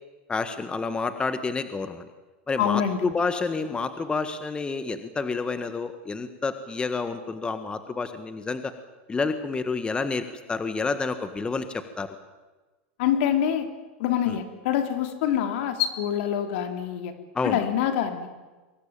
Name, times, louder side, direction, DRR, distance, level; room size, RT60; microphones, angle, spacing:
voice 1, 0.3-2.1 2.5-8.7 9.1-12.1 14.3-14.4 17.3-17.6, left 4 dB, 15° left, 10 dB, 1.6 m, -29 dB
voice 2, 2.6-3.0 13.0-13.7 14.0-17.1 17.4-18.3, left 9 dB, 65° left, 8 dB, 3.6 m, -25 dB
24.5 x 19.5 x 9.1 m, 1.2 s
supercardioid pair, 120°, 6 cm